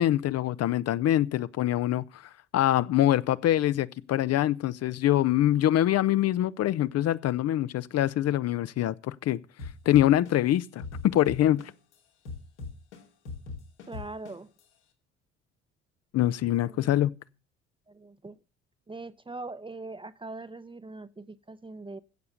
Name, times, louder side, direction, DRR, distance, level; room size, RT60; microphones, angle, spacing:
voice 1, 0.0-9.4 9.9-10.8 11.1-11.7 16.1-17.1, left 13 dB, 45° left, 0.7 m, -24 dB
sound 1, 9.6-11.9 12.2-14.6, left 4 dB, 80° left, 2.7 m, -39 dB
voice 2, 13.9-14.5 16.6-16.9 17.9-18.4 18.9-22.0, right 3 dB, 15° right, 0.8 m, -41 dB
16.0 x 7.0 x 6.6 m
figure-of-eight pair, 55°, 34 cm